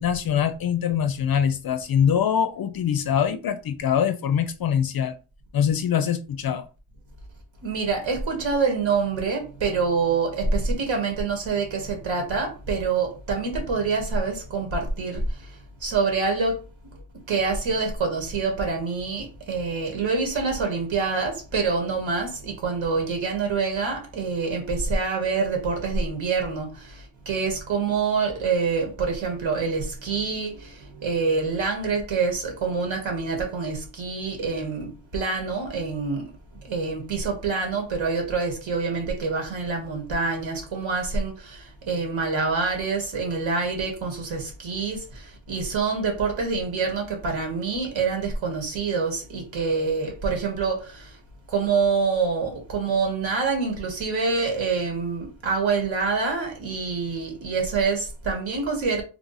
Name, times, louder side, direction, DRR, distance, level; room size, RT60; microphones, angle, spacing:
voice 1, 0.0-5.1 5.5-6.7, left 8 dB, 50° left, 0.5 m, -23 dB
voice 2, 7.6-16.6 17.3-36.3 36.6-51.2 51.5-59.0, right 4 dB, 65° right, 1.8 m, -26 dB
3.6 x 2.4 x 4.0 m
cardioid pair, 100°, 50 cm